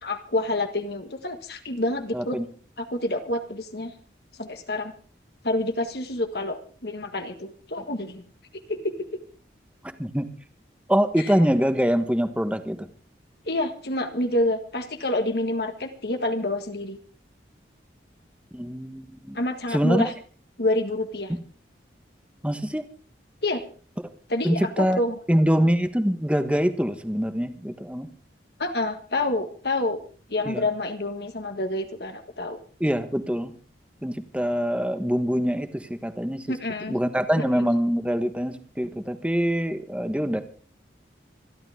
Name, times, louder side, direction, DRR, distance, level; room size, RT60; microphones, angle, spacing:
voice 1, 0.0-2.4 2.8-3.9 4.4-4.9 5.4-8.2 8.7-9.2 11.2-11.3 13.4-17.0 19.3-20.1 20.6-21.3 23.4-23.6 24.3-25.1 28.6-30.0 30.3-32.6 36.5-37.0 37.4-37.7, left 1 dB, 60° left, 6 dB, 1.7 m, -28 dB
voice 2, 2.1-2.4 10.0-10.3 10.9-12.9 18.5-19.4 19.7-20.1 22.4-22.8 24.4-25.0 25.3-28.1 30.4-30.6 32.8-33.5 34.0-36.5 36.9-40.4, equal, 5° right, 9 dB, 1.2 m, -24 dB
26.0 x 12.0 x 3.6 m, 0.40 s
head